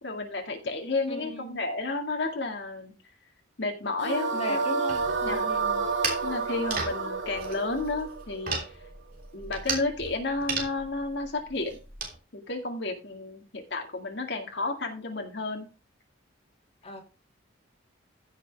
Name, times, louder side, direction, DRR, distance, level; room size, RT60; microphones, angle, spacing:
voice 1, 0.0-2.9 3.6-4.8 5.2-5.5 6.2-8.6 9.3-11.8 12.3-15.7, left 3 dB, 60° left, 2.0 m, -32 dB
voice 2, 1.1-1.6 4.3-5.9 16.8-17.0, left 1 dB, 30° left, 2.2 m, -38 dB
sound 1, 4.0-9.2, right 4 dB, 75° right, 2.3 m, -30 dB
sound 2, 4.9-12.1, right 4 dB, 45° right, 3.4 m, -36 dB
15.5 x 6.2 x 3.4 m
head